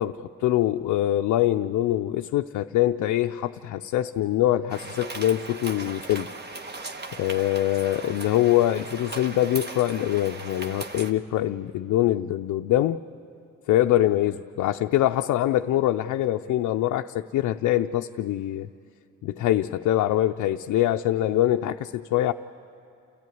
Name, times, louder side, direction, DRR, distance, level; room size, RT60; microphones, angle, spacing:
voice 1, 0.0-6.3 7.2-13.0 13.7-18.7 19.2-22.3, left 13 dB, 75° left, 5 dB, 0.5 m, -24 dB
sound 1, 4.7-11.1, right 3 dB, 35° right, 1.2 m, -38 dB
29.0 x 14.0 x 9.4 m, 2.5 s
cardioid pair, 90°, 30 cm